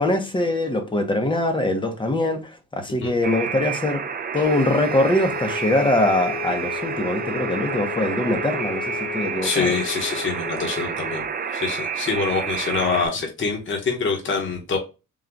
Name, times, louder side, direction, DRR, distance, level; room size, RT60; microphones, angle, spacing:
voice 1, 0.0-2.4 2.7-4.0 4.3-9.8, left 1 dB, 15° left, 0.7 m, -22 dB
Alarm, 3.2-13.1, right 6 dB, 30° right, 0.4 m, -29 dB
sound 1, 4.4-12.2, left 15 dB, 65° left, 1.2 m, -35 dB
voice 2, 9.4-11.2 11.5-14.8, left 5 dB, 40° left, 1.0 m, -25 dB
3.9 x 2.2 x 4.4 m
cardioid pair, 145°, 31 cm